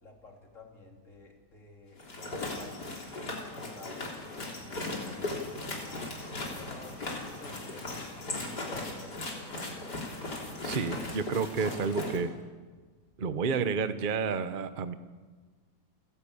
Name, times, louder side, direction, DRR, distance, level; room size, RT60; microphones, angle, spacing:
voice 1, 0.0-3.0 3.5-5.9 6.3-8.0 8.3-9.5, left 3 dB, 45° left, 1 dB, 3.5 m, -52 dB
sound 1, 2.0-12.2, left 2 dB, 70° left, 4.1 m, -38 dB
voice 2, 10.6-12.3 13.2-14.9, right 5 dB, 35° right, 11 dB, 0.9 m, -30 dB
29.5 x 12.0 x 8.7 m, 1.4 s
omnidirectional pair, 1.8 m